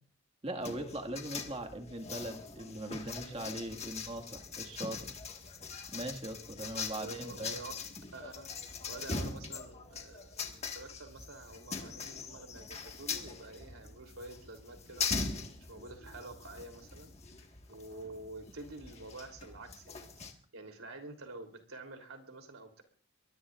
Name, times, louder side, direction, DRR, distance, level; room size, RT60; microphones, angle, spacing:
voice 1, 0.4-5.2 5.9-7.6, right 1 dB, 30° right, 4 dB, 1.9 m, -40 dB
sound 1, 0.6-20.3, left 4 dB, 30° left, 1.7 m, -42 dB
voice 2, 6.6-7.7 8.1-8.5 8.9-15.1 15.7-17.2 17.7-22.8, right 2 dB, 90° right, 5 dB, 3.4 m, -48 dB
24.0 x 20.0 x 2.5 m, 0.43 s
head